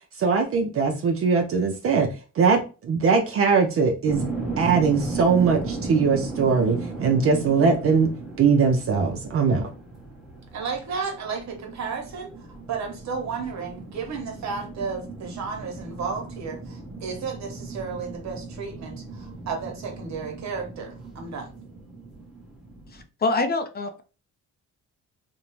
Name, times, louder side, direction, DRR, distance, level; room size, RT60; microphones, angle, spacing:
voice 1, 0.2-2.1 2.4-4.3 4.6-8.1 8.4-9.7, right 5 dB, 50° right, 0.5 m, -21 dB
sound 1, 4.1-23.0, right 3 dB, ahead, 0.9 m, -36 dB
voice 2, 10.5-12.3 12.7-21.5, right 5 dB, 65° right, 0.9 m, -33 dB
voice 3, 22.9-24.0, left 3 dB, 35° left, 0.4 m, -26 dB
2.6 x 2.1 x 3.0 m
cardioid pair, 90°, 30 cm